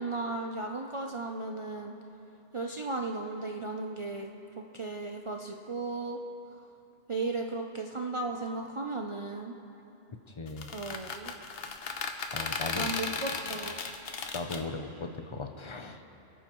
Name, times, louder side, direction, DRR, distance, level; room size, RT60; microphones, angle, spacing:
voice 1, 0.0-1.9 2.5-6.2 7.1-9.5 10.7-11.3 12.8-13.8, right 3 dB, 50° right, 1 dB, 0.4 m, -35 dB
voice 2, 10.3-10.7 12.3-12.9 14.3-16.0, left 3 dB, 35° left, 6 dB, 0.5 m, -38 dB
sound 1, 10.5-14.6, left 5 dB, 60° left, 1.0 m, -35 dB
25.5 x 9.1 x 3.0 m, 3.0 s
omnidirectional pair, 1.2 m